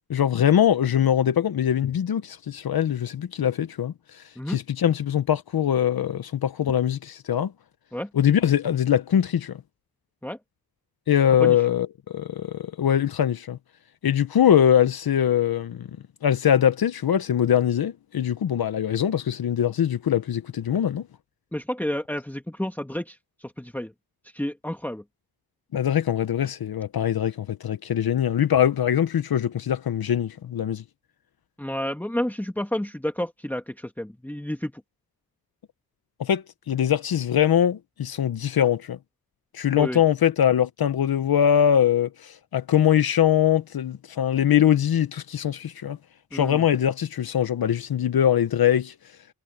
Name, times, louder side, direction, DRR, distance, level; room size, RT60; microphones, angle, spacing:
voice 1, 0.1-7.5 8.1-9.6 11.1-13.6 14.0-15.9 16.2-21.0 25.7-30.8 36.2-39.0 39.5-46.0 46.3-48.9, left 9 dB, 75° left, 0.9 m, -22 dB
voice 2, 21.5-23.9 24.3-25.0 31.6-34.7 39.8-40.0 46.3-46.6, left 1 dB, 5° left, 1.7 m, -30 dB
wide cardioid pair, 110°, 37 cm